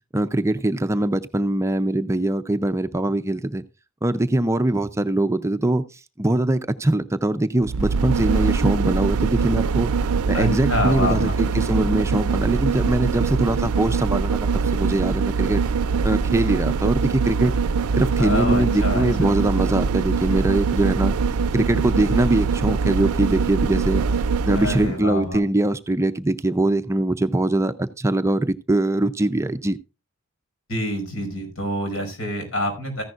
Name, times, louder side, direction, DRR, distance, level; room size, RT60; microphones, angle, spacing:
voice 1, 0.1-3.6 4.0-9.9 10.3-14.5 14.7-15.6 16.0-17.5 18.0-21.2 21.5-24.0 24.4-29.8, right 1 dB, 15° right, 0.4 m, -22 dB
sound 1, 7.6-25.0 25.3-25.4, right 5 dB, 90° right, 0.4 m, -23 dB
voice 2, 10.3-11.3 18.2-19.4 24.5-25.4 30.7-33.0, left 1 dB, 70° left, 5.4 m, -26 dB
14.5 x 10.5 x 2.4 m
head